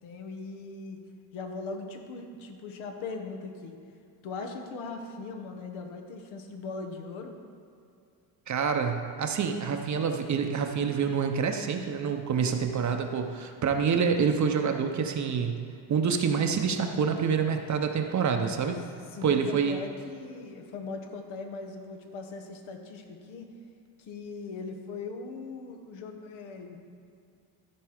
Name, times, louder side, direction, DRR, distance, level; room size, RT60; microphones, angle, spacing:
voice 1, 0.0-1.0 1.3-3.8 4.2-7.4 19.1-23.6 24.0-26.8, left 4 dB, 90° left, 4 dB, 1.2 m, -39 dB
voice 2, 8.5-15.6 15.9-18.8 19.2-19.8, right 6 dB, 40° right, 5 dB, 0.7 m, -27 dB
13.5 x 4.5 x 4.9 m, 2.5 s
cardioid pair, 115°, 47 cm